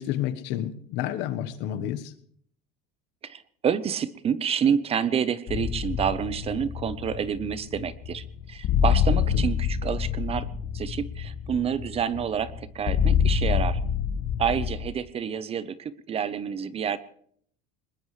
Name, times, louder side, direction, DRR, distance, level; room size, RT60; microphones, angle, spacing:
voice 1, 0.0-2.1 9.1-9.5, left 11 dB, 65° left, 12 dB, 1.3 m, -30 dB
voice 2, 3.2-10.5 10.7-13.8 14.4-17.0, right 8 dB, 30° right, 16 dB, 0.8 m, -28 dB
sound 1, 5.5-14.9, left 8 dB, 45° left, 1.5 m, -27 dB
20.5 x 20.5 x 3.3 m, 0.63 s
supercardioid pair, 120°, 20 cm